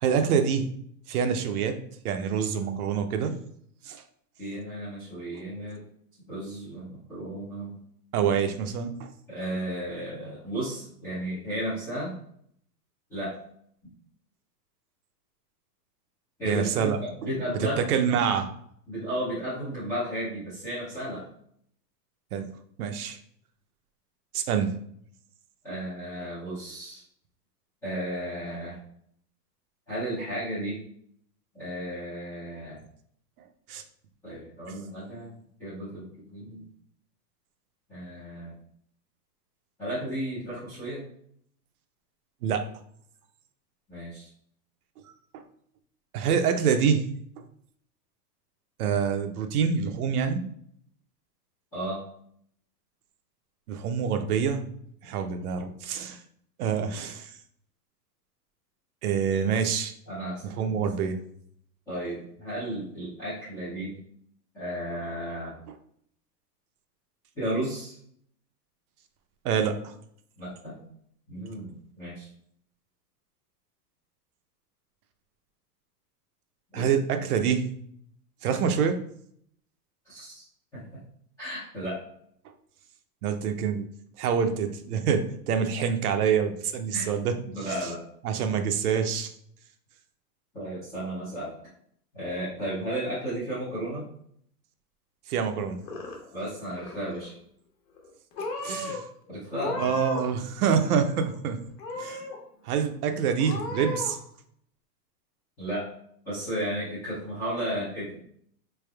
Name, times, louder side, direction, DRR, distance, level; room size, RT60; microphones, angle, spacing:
voice 1, 0.0-0.7 1.1-1.8 2.0-3.4 3.8-4.0 8.1-9.1 16.4-17.0 17.8-18.5 22.3-22.5 22.8-23.2 24.3-24.7 33.7-33.8 42.4-42.7 45.3-45.4 46.1-47.0 48.8-50.4 53.7-54.7 55.0-56.2 56.6-57.3 59.0-59.9 60.6-61.2 69.4-69.9 76.7-77.7 78.4-79.0 83.2-83.9 84.2-87.3 88.2-89.3 95.3-95.8 98.6-99.0 99.8-101.6 102.0-102.2 102.6-104.2, right 7 dB, 65° right, 7 dB, 0.6 m, -26 dB
voice 2, 4.4-5.8 6.3-7.7 9.3-12.1 13.1-13.4 16.4-17.9 18.9-21.3 25.6-27.0 27.8-28.8 29.9-30.8 31.5-32.8 34.2-35.3 35.6-36.1 36.3-36.6 37.9-38.5 39.8-41.0 43.9-44.3 51.7-52.0 60.1-60.8 61.9-64.0 64.5-65.6 67.4-68.0 70.4-70.8 71.3-72.3 76.7-76.9 80.1-80.4 80.7-80.8 81.4-82.0 86.9-87.1 87.5-88.0 90.5-91.5 92.1-94.0 96.3-97.4 99.3-100.0 105.6-105.9 106.2-108.2, right 1 dB, 5° left, -12 dB, 0.4 m, -34 dB
Purr / Meow, 95.6-96.4 96.7-97.3 98.0-98.1 98.4-99.0 99.5-100.4 100.6-101.4 101.8-102.4 102.8-102.9 103.4-104.1, left 3 dB, 75° left, 1.2 m, -35 dB
4.3 x 3.4 x 2.2 m, 0.66 s
hypercardioid pair, 145°, 50 cm